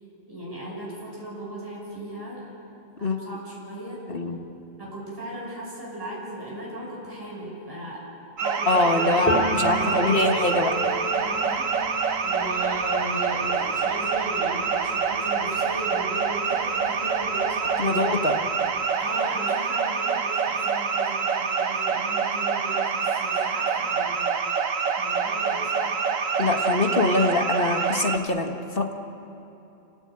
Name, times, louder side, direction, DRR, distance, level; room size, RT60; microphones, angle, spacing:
voice 1, 0.3-2.4 3.0-4.0 4.8-8.0 8.4-11.7 12.2-18.2 19.0-24.3 25.0-26.0, right 1 dB, 15° right, -5 dB, 6.1 m, -37 dB
voice 2, 4.1-4.4 8.7-10.8 17.8-18.3 26.4-28.9, left 3 dB, 45° left, 4 dB, 1.8 m, -24 dB
sound 1, 8.4-28.2, right 6 dB, 80° right, 1.6 m, -26 dB
Piano, 9.3-16.9 17.2-18.8, left 1 dB, 10° left, 2.7 m, -33 dB
29.5 x 17.0 x 8.9 m, 3.0 s
omnidirectional pair, 1.3 m